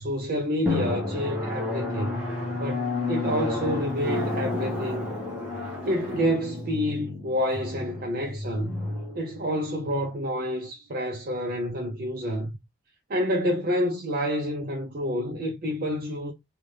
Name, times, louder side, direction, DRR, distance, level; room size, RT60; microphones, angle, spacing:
voice 1, 0.0-2.2 2.5-5.1 5.9-8.7 9.2-12.6 13.1-16.3, equal, 45° right, 0.5 m, -28 dB
Drum, 0.7-9.9, left 2 dB, 5° right, 0.9 m, -31 dB
2.6 x 2.4 x 3.2 m
head